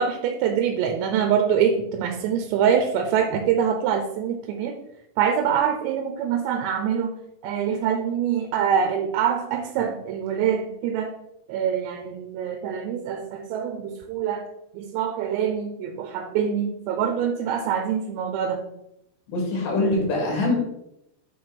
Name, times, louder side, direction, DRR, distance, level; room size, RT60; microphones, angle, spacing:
voice 1, 0.0-4.8 5.2-7.1 7.4-11.1 11.5-14.5 14.7-18.6, right 8 dB, 85° right, 4 dB, 2.9 m, -24 dB
voice 2, 19.3-20.6, left 2 dB, 75° left, -2 dB, 4.7 m, -23 dB
9.9 x 3.5 x 5.2 m, 0.82 s
omnidirectional pair, 4.9 m